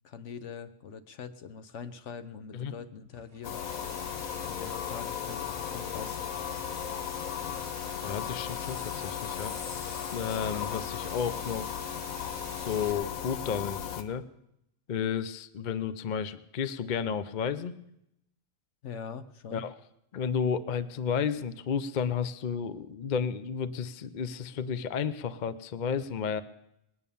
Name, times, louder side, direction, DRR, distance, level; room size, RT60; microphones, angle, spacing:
voice 1, 0.0-3.6 4.4-6.2 6.7-7.0 18.8-19.6, left 6 dB, 65° left, 11 dB, 1.1 m, -43 dB
sound 1, 3.1-12.9, right 2 dB, 10° right, 1.4 m, -47 dB
sound 2, 3.4-14.0, left 9 dB, 85° left, 1.4 m, -36 dB
voice 2, 7.9-9.6 10.1-11.8 12.6-14.2 14.9-17.8 19.5-19.8 20.1-26.4, left 7 dB, 50° left, 13 dB, 0.6 m, -32 dB
20.5 x 9.2 x 6.9 m, 0.79 s
omnidirectional pair, 1.4 m